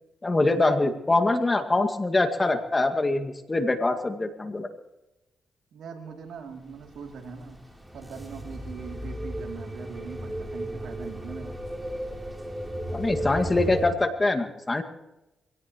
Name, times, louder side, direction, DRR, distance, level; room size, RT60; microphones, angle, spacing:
voice 1, 0.2-4.7 12.9-14.8, left 2 dB, 30° left, 7 dB, 2.0 m, -24 dB
voice 2, 5.7-7.6 7.9-11.5, right 5 dB, 80° right, 2 dB, 2.9 m, -41 dB
sound 1, 6.6-13.9, right 1 dB, 10° right, 3.5 m, -35 dB
25.5 x 17.5 x 3.1 m, 0.97 s
supercardioid pair, 60°, 0 cm